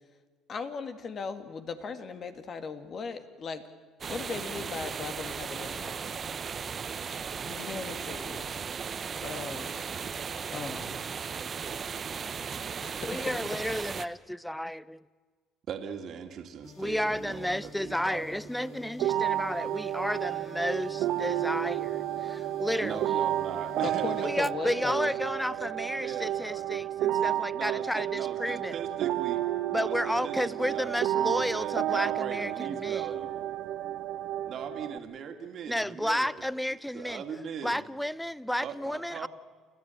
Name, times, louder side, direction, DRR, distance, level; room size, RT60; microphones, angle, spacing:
voice 1, 0.5-3.6 4.1-6.2 6.6-6.7 7.5-8.7 9.2-9.8 10.5-10.9 12.8-12.9 13.3-13.4 23.8-25.1, left 5 dB, 45° left, 2.1 m, -38 dB
sound 1, 4.0-14.1, right 6 dB, 40° right, 0.9 m, -36 dB
voice 2, 13.1-15.0 16.8-23.0 24.2-28.7 29.7-33.1 35.7-37.2 37.6-39.3, equal, 5° left, 0.7 m, -32 dB
voice 3, 15.7-18.9 22.8-25.2 25.5-25.6 26.0-26.7 27.5-33.5 34.4-36.5 36.9-37.8 38.6-39.3, right 7 dB, 55° right, 2.4 m, -40 dB
sound 2, 16.6-24.3, left 2 dB, 70° left, 4.2 m, -49 dB
sound 3, 19.0-35.0, right 12 dB, 70° right, 1.2 m, -31 dB
29.5 x 13.5 x 9.1 m
supercardioid pair, 90°, 0 cm